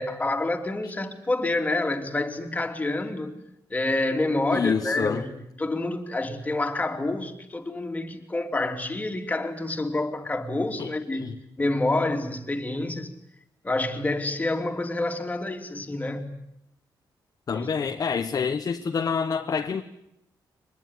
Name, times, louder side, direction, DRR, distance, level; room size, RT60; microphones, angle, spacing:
voice 1, 0.0-3.4 3.7-13.1 13.6-16.3 17.5-17.9, left 2 dB, 20° left, 4 dB, 3.1 m, -28 dB
voice 2, 4.5-5.2 10.8-11.3 17.5-19.8, left 6 dB, 45° left, 5 dB, 1.3 m, -27 dB
24.0 x 20.5 x 9.7 m, 0.80 s
cardioid pair, 105°, 8 cm